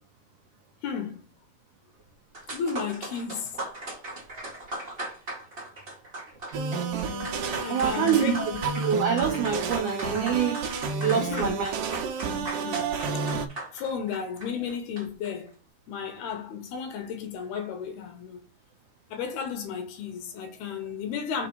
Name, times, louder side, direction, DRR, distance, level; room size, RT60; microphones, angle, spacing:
voice 1, 0.8-1.3 2.5-3.7 4.3-4.5 7.6-8.6 11.2-11.6 12.6-13.2 13.7-15.6 15.9-18.4 19.1-21.5, left 7 dB, 70° left, 3.4 m, -34 dB
sound 1, 2.1-2.2 2.3-15.3, right 2 dB, 30° right, 1.1 m, -39 dB
sound 2, 6.5-13.5, right 5 dB, 65° right, 2.6 m, -31 dB
voice 2, 7.7-8.5 8.8-10.6 11.0-11.7, right 7 dB, 80° right, 1.7 m, -25 dB
6.6 x 4.6 x 4.8 m
omnidirectional pair, 4.8 m